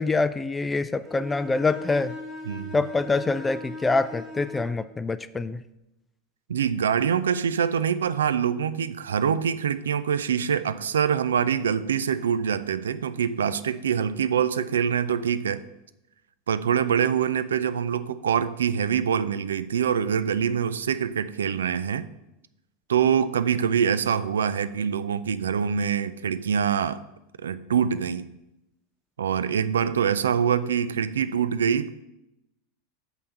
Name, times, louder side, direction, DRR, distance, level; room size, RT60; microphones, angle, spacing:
voice 1, 0.0-2.1 2.7-5.6, left 3 dB, 15° left, 11 dB, 0.4 m, -25 dB
Bowed string instrument, 1.0-4.8, left 1 dB, 20° right, 3.3 m, -39 dB
voice 2, 2.5-2.8 6.5-15.6 16.5-22.1 22.9-27.0 27.4-28.3 29.2-32.0, right 7 dB, 75° right, 15 dB, 0.4 m, -25 dB
6.2 x 5.5 x 6.6 m, 0.90 s
hypercardioid pair, 85°, 0 cm